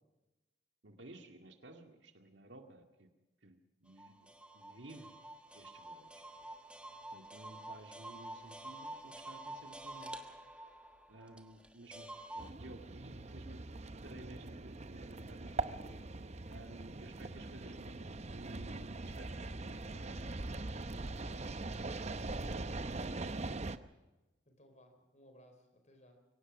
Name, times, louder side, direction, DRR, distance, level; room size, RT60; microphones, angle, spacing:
voice 1, 0.8-3.1 3.4-5.2 5.5-6.2 7.1-10.1 11.1-12.1 12.3-13.6 14.0-15.8 16.5-21.7, right 1 dB, 70° right, 5 dB, 2.1 m, -54 dB
sound 1, 4.0-12.5, right 1 dB, 5° right, 1.4 m, -48 dB
sound 2, 12.4-23.8, right 2 dB, 35° right, 0.8 m, -42 dB
voice 2, 24.5-26.2, equal, 40° left, 6 dB, 4.4 m, -62 dB
23.0 x 18.5 x 6.1 m, 1.0 s
head